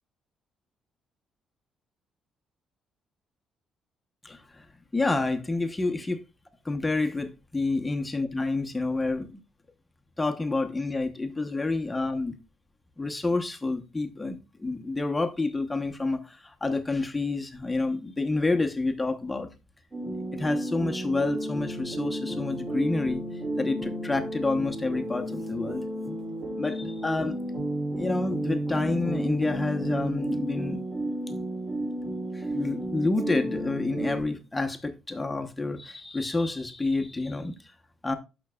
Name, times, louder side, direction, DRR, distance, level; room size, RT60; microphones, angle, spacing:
voice 1, 4.2-4.7 4.9-6.2 6.6-9.4 10.2-12.4 13.0-19.5 20.3-23.2 23.6-25.8 26.6-27.4 28.0-30.8 32.3-37.7 38.0-38.2, left 3 dB, 15° left, 0.9 m, -29 dB
sound 1, 19.9-34.2, right 1 dB, 25° right, 2.6 m, -32 dB
13.0 x 6.0 x 2.3 m
cardioid pair, 120°, 0 cm